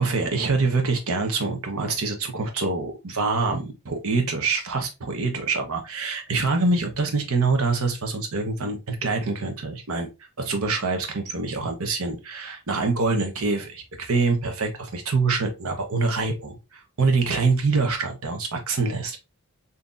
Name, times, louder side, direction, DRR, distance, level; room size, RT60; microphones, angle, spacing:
voice 1, 0.0-10.1 10.4-16.6 17.0-19.2, right 3 dB, 75° right, 4 dB, 0.8 m, -25 dB
3.8 x 2.8 x 2.4 m, 0.26 s
head